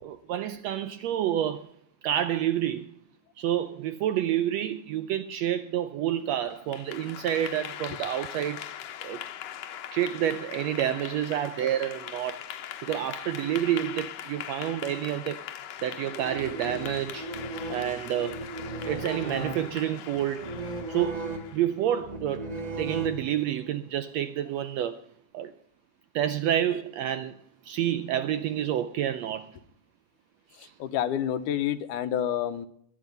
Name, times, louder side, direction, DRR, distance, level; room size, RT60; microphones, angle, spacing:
voice 1, 0.0-1.7 2.0-2.9 3.4-8.7 9.0-9.2 9.9-12.4 12.8-15.4 15.8-17.3 17.7-18.4 18.9-20.5 20.9-22.5 22.8-25.0 25.3-25.5 26.1-27.4 27.6-29.6 30.6-30.7, right 11 dB, 80° right, 1.6 m, -29 dB
Clapping / Applause, 6.5-21.8, left 11 dB, 65° left, 1.8 m, -41 dB
sound 1, 16.1-23.6, right 2 dB, 35° right, 0.6 m, -37 dB
voice 2, 30.6-32.7, left 10 dB, 85° left, 2.4 m, -29 dB
21.5 x 8.9 x 5.3 m
omnidirectional pair, 3.6 m